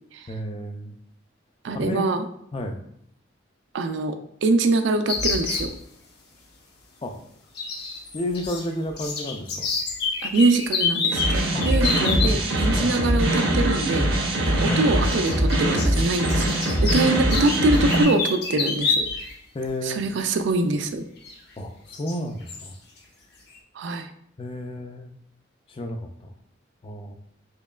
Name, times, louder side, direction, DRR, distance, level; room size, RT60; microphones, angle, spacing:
voice 1, 0.3-0.9 1.7-2.8 7.0-7.2 8.1-9.7 11.5-11.7 12.0-12.9 14.6-14.8 19.5-20.2 21.6-22.8 24.4-25.1 25.7-26.3 26.8-27.1, left 1 dB, 25° left, 5 dB, 0.3 m, -32 dB
voice 2, 1.6-2.2 3.7-5.7 10.2-14.1 14.5-16.5 16.8-19.0 19.8-21.1 23.7-24.1, right 2 dB, 70° right, 8 dB, 0.4 m, -24 dB
sound 1, 5.1-5.7 7.5-8.6 8.9-12.3 13.7-13.9 15.0-19.3 19.6-19.7 21.2-21.3 21.9-22.2 22.5-22.7, left 4 dB, 55° left, 0.7 m, -28 dB
sound 2, 11.1-18.0, right 1 dB, 90° right, 0.9 m, -22 dB
4.4 x 2.8 x 2.4 m, 0.70 s
head